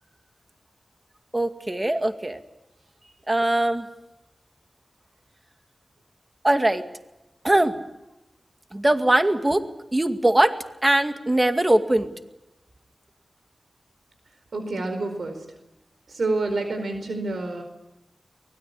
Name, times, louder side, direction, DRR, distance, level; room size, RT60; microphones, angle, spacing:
voice 1, 1.3-2.4 3.3-3.9 6.4-6.8 7.4-7.8 8.7-9.6 9.9-12.1, right 1 dB, 25° right, 7 dB, 2.2 m, -21 dB
voice 2, 14.5-15.4 16.1-17.6, right 2 dB, 80° right, 6 dB, 4.6 m, -28 dB
24.0 x 20.5 x 8.4 m, 0.92 s
wide cardioid pair, 70°, 0 cm